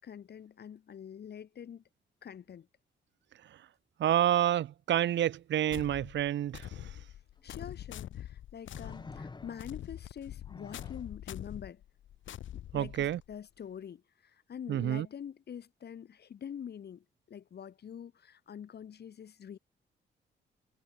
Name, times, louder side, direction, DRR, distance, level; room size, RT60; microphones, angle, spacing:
voice 1, 0.0-1.8 2.2-2.7 7.4-11.8 12.5-19.6, left 8 dB, 60° left, 6.2 m, -45 dB
voice 2, 4.0-6.6 12.7-13.2 14.7-15.0, right 11 dB, 75° right, 1.1 m, -28 dB
sound 1, 5.7-13.3, left 12 dB, 90° left, 5.1 m, -45 dB
sound 2, 7.3-7.4 8.7-9.9 10.4-11.1 13.0-13.2, left 3 dB, 25° left, 4.8 m, -48 dB
cardioid pair, 125°, 19 cm